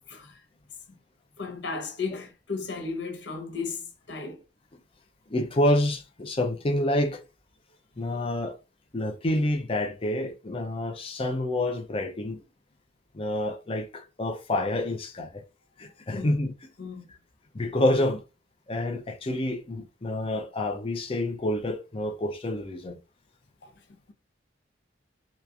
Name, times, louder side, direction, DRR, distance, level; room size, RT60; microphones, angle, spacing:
voice 1, 0.1-0.4 0.9-1.0 1.4-4.4 8.1-8.3 16.1-16.3 16.8-17.0 23.6-24.0, left 4 dB, 70° left, 0.7 m, -35 dB
voice 2, 5.3-7.2 8.0-8.6 8.9-12.4 13.1-15.4 15.8-16.5 17.5-18.2 18.7-23.0, left 1 dB, 30° left, 0.5 m, -28 dB
2.9 x 2.4 x 2.3 m
head